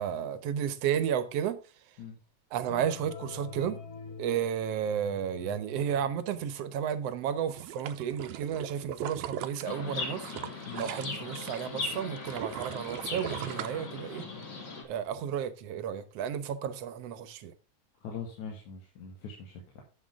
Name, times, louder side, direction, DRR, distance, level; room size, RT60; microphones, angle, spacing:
voice 1, 0.0-1.6 2.5-3.8 4.2-10.3 10.8-14.2 14.9-17.5, right 9 dB, 65° right, 1.9 m, -32 dB
sound 1, 2.7-6.8, left 5 dB, 60° left, 2.5 m, -45 dB
sound 2, 7.5-11.6 11.9-14.4 14.9-15.0, right 10 dB, 80° right, 2.0 m, -39 dB
Chirp tweet, 9.6-14.8, left 3 dB, 40° left, 2.7 m, -38 dB
voice 2, 18.0-19.8, left 6 dB, 85° left, 3.4 m, -42 dB
11.5 x 8.0 x 3.6 m
omnidirectional pair, 3.3 m